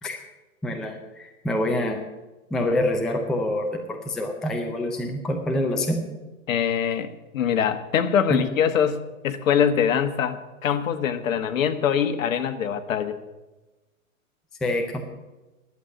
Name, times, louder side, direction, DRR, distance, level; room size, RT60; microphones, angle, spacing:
voice 1, 0.6-2.0 2.5-6.0 8.3-8.4 14.6-15.0, left 1 dB, ahead, 3 dB, 0.4 m, -26 dB
voice 2, 6.5-13.2, left 8 dB, 70° left, 10 dB, 1.4 m, -23 dB
11.0 x 8.1 x 8.8 m, 1.1 s
hypercardioid pair, 135°, 42 cm